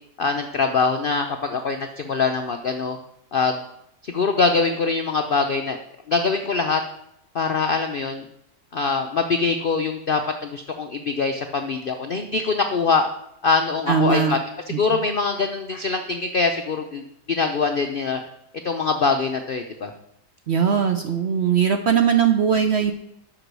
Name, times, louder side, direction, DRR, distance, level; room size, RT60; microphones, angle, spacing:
voice 1, 0.2-3.0 3.3-3.6 4.0-5.8 6.1-6.8 7.3-8.3 8.7-13.1 13.4-14.4 14.8-18.2 18.6-19.9, left 4 dB, 75° left, 5 dB, 0.5 m, -23 dB
voice 2, 13.9-14.4 14.7-15.0 20.5-22.9, right 7 dB, 65° right, 6 dB, 0.7 m, -20 dB
8.2 x 6.1 x 6.0 m, 0.80 s
omnidirectional pair, 1.8 m